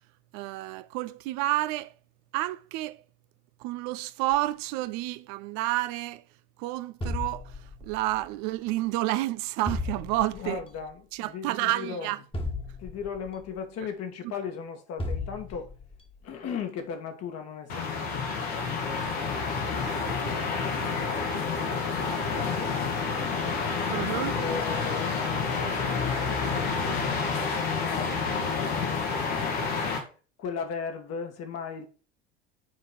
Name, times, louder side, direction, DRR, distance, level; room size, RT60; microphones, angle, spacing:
voice 1, 0.3-1.9 2.3-3.0 3.6-6.2 6.6-10.6 11.1-12.2 23.9-24.4, right 17 dB, 55° right, 0.6 m, -30 dB
sound 1, 7.0-8.1 9.7-10.6 12.3-13.4 15.0-16.0, left 2 dB, 15° left, 1.6 m, -34 dB
voice 2, 10.3-12.1 12.8-15.7 16.2-23.8 24.3-29.6 30.4-31.9, left 6 dB, 50° left, 1.9 m, -38 dB
sound 2, 17.7-30.0, left 5 dB, 70° left, 2.4 m, -29 dB
7.3 x 4.6 x 5.7 m
hypercardioid pair, 70°, 33 cm